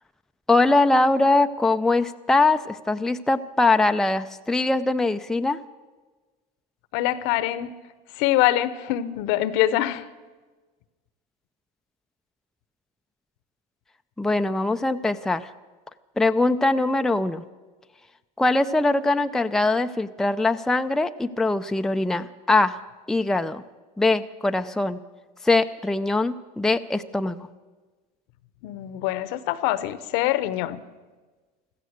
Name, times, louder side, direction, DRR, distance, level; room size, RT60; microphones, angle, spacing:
voice 1, 0.5-5.6 14.2-15.5 16.2-17.4 18.4-22.7 23.1-23.6 24.0-25.0 25.4-27.4, left 2 dB, ahead, 7 dB, 0.5 m, -22 dB
voice 2, 6.9-7.7 8.1-10.1 28.6-30.8, left 14 dB, 65° left, 15 dB, 1.0 m, -24 dB
16.0 x 13.5 x 6.6 m, 1.3 s
supercardioid pair, 100°, 20 cm